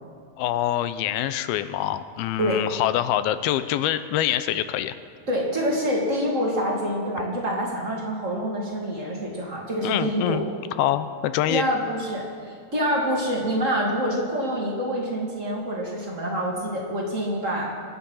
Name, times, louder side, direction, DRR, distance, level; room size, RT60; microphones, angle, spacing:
voice 1, 0.4-4.9 9.8-10.4 10.8-11.7, left 12 dB, 90° left, 13 dB, 2.5 m, -25 dB
voice 2, 5.3-10.4 11.5-17.7, equal, 20° right, -3 dB, 2.6 m, -26 dB
24.5 x 10.0 x 5.7 m, 2.2 s
omnidirectional pair, 4.3 m